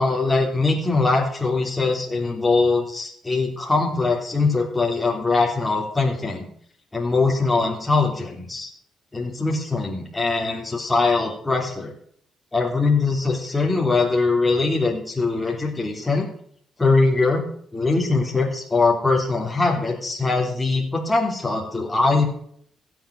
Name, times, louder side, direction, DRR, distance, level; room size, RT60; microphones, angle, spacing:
voice 1, 0.0-6.4 6.9-8.7 9.1-11.9 12.5-16.3 16.8-17.4 17.7-22.3, left 3 dB, 15° left, -1 dB, 3.2 m, -22 dB
16.0 x 7.8 x 6.5 m, 0.63 s
cardioid pair, 90°, 0 cm